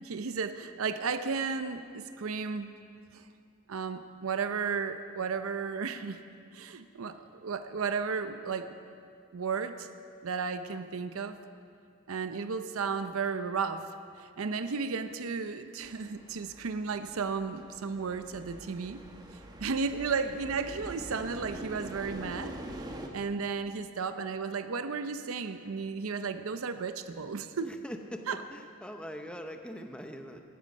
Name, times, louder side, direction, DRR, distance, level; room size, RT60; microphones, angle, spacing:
voice 1, 0.0-2.7 3.1-3.3 3.7-6.2 6.5-8.8 9.3-9.9 10.2-11.4 12.1-13.9 14.2-19.0 19.6-27.7 28.3-28.4, right 5 dB, 80° right, 10 dB, 0.6 m, -34 dB
sound 1, 15.8-23.1, right 1 dB, 20° right, 1.0 m, -45 dB
voice 2, 27.6-28.2 28.5-30.4, equal, 5° left, 5 dB, 0.7 m, -42 dB
16.0 x 12.5 x 5.3 m, 2.4 s
head